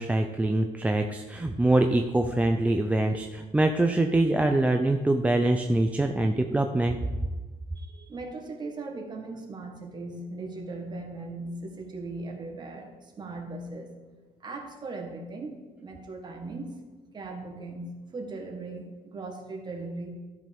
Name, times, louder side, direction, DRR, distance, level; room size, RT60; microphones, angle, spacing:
voice 1, 0.0-7.0, right 2 dB, 10° right, 4 dB, 0.4 m, -24 dB
voice 2, 7.7-14.0 14.4-15.5 15.8-16.7 17.1-20.1, right 2 dB, 30° right, 1 dB, 1.7 m, -38 dB
12.5 x 5.4 x 5.3 m, 1.3 s
cardioid pair, 135°, 15 cm